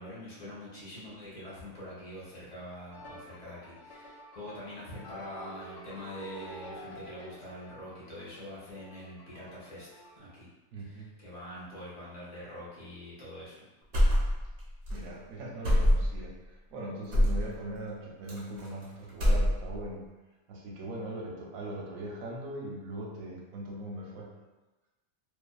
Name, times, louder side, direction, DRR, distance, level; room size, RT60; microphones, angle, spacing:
voice 1, 0.0-9.9 10.1-10.5 10.8-13.7, left 1 dB, 35° left, -8 dB, 0.9 m, -44 dB
sound 1, 2.9-10.2, equal, 70° left, 0.9 m, -49 dB
voice 2, 10.7-11.1 14.9-20.1 20.5-24.3, right 1 dB, 85° right, -2 dB, 1.0 m, -40 dB
sound 2, 13.9-14.6 14.9-15.0 15.6-16.3 17.1-17.5 18.3-18.8 19.1-19.8, equal, 60° right, 1.0 m, -24 dB
2.6 x 2.4 x 2.3 m, 1.1 s
omnidirectional pair, 1.4 m